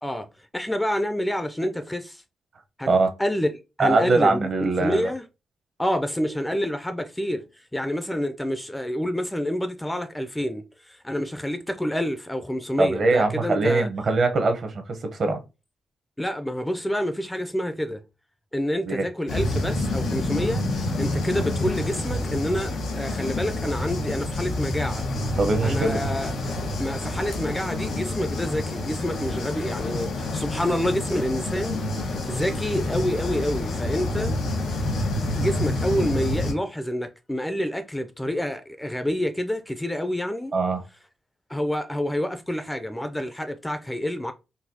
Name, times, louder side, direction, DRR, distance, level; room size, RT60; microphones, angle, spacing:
voice 1, 0.0-2.2 2.8-2.9 3.2-3.5 3.8-5.2 5.8-7.4 7.7-13.9 16.2-18.0 18.5-25.0 25.6-26.3 26.8-34.4 35.3-40.5 41.5-44.3, equal, 5° left, 0.3 m, -28 dB
voice 2, 3.8-5.1 12.8-15.4 18.8-19.0 25.4-26.0 40.5-40.8, right 3 dB, 50° right, 0.7 m, -22 dB
sound 1, 19.3-36.5, left 2 dB, 85° left, 1.3 m, -28 dB
4.0 x 2.3 x 2.7 m
cardioid pair, 105°, 0 cm